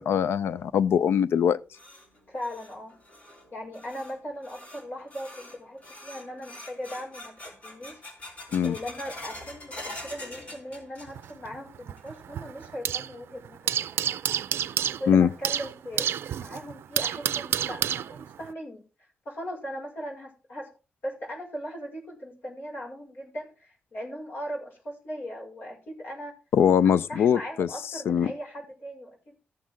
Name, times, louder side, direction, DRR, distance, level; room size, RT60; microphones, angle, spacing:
voice 1, 0.0-1.6 8.5-8.7 15.1-15.3 26.5-27.7 28.1-28.3, left 8 dB, 80° left, 0.4 m, -22 dB
sound 1, 1.4-11.5 11.8-12.4 12.8-12.9 13.6-13.7 15.3-15.4 15.9-16.0 16.4-16.5 17.0-17.1 17.6-18.0, left 1 dB, 35° left, 3.2 m, -45 dB
voice 2, 2.3-3.0 3.5-8.4 8.6-14.3 15.0-18.9 19.3-20.7 21.0-26.4 26.8-29.4, equal, 55° left, 5.5 m, -39 dB
sound 2, 11.1-13.2 13.4-18.5, right 9 dB, 85° right, 0.4 m, -30 dB
14.0 x 7.5 x 3.7 m
wide cardioid pair, 155°, 4 cm